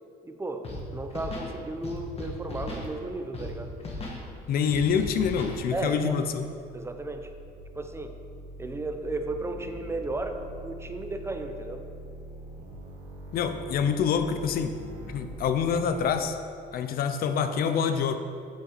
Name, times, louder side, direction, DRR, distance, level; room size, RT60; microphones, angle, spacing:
voice 1, 0.2-3.7 5.7-6.2 6.7-7.3 7.8-8.2 8.6-11.8, right 2 dB, 15° right, 6 dB, 0.6 m, -34 dB
Scratching (performance technique), 0.6-0.8 1.1-1.5 1.8-2.9 3.3-3.5 3.8-4.2 4.7-5.6, left 2 dB, 35° left, 1.7 m, -36 dB
voice 2, 4.5-6.5 13.3-14.8 15.1-16.4 16.7-18.2, left 7 dB, 60° left, 8 dB, 0.6 m, -26 dB
sound 1, 5.2-16.2, right 1 dB, 70° right, 1.5 m, -45 dB
8.2 x 7.9 x 4.1 m, 2.4 s
cardioid pair, 110°, 17 cm